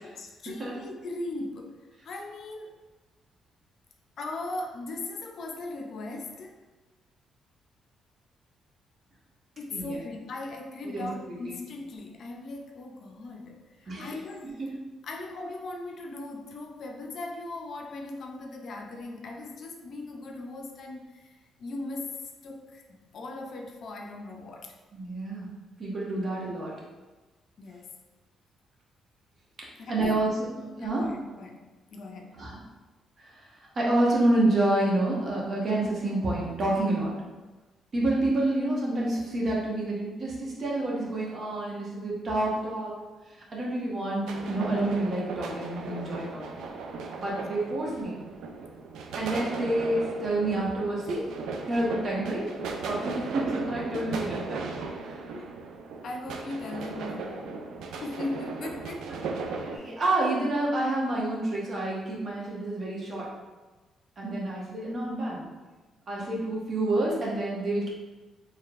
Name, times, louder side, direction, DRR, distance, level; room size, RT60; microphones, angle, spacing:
voice 1, 0.0-1.8 2.0-2.8 4.2-6.6 9.6-14.5 15.0-24.8 27.6-28.0 29.8-30.2 30.8-32.5 53.9-54.0 55.3-55.5 56.0-57.7 58.0-59.4, left 2 dB, 60° left, 2 dB, 0.5 m, -39 dB
voice 2, 24.9-25.5 25.8-26.7 29.9-31.1 32.3-32.6 33.2-33.5 33.7-37.1 37.9-42.9 43.5-46.7 47.1-48.2 49.1-51.3 51.7-52.5 52.8-54.7 59.1-59.2 59.4-63.3 64.2-65.5 66.1-67.9, right 1 dB, 45° right, -4 dB, 1.2 m, -28 dB
sound 1, 44.3-59.8, right 4 dB, 80° right, 0.4 m, -37 dB
4.7 x 3.2 x 2.5 m, 1.2 s
cardioid pair, 90°, 0 cm